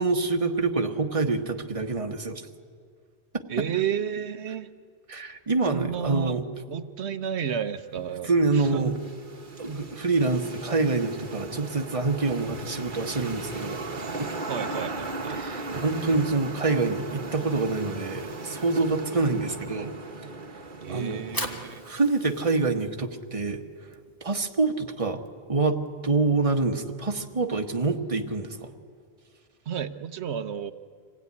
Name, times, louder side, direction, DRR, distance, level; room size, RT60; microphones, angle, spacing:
voice 1, 0.0-2.4 3.3-3.4 5.1-6.4 8.2-8.9 9.6-13.8 14.2-14.3 15.4-19.9 20.9-21.2 21.8-23.6 24.2-25.2 25.5-28.7, right 3 dB, 30° right, 4 dB, 1.4 m, -26 dB
voice 2, 3.5-4.7 5.7-6.4 6.7-8.9 14.5-15.4 20.8-21.9 29.7-30.7, right 8 dB, 80° right, 11 dB, 1.1 m, -31 dB
sound 1, 7.9-22.4, right 3 dB, 50° right, 1.4 m, -37 dB
Fire, 21.0-27.3, left 1 dB, 20° left, 1.8 m, -41 dB
26.0 x 16.5 x 9.6 m, 2.1 s
omnidirectional pair, 1.1 m